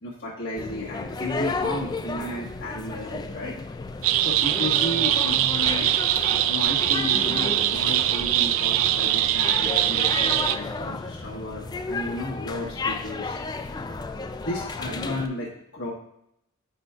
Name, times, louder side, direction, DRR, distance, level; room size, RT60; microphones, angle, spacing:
voice 1, 0.0-3.5 4.2-5.9 6.5-13.4 14.4-15.9, left 1 dB, 60° left, -7 dB, 1.6 m, -33 dB
sound 1, 0.6-15.3, left 3 dB, 20° left, 0.3 m, -33 dB
sound 2, 4.0-10.6, right 12 dB, 75° right, 0.3 m, -22 dB
12.0 x 4.3 x 2.4 m, 0.75 s
head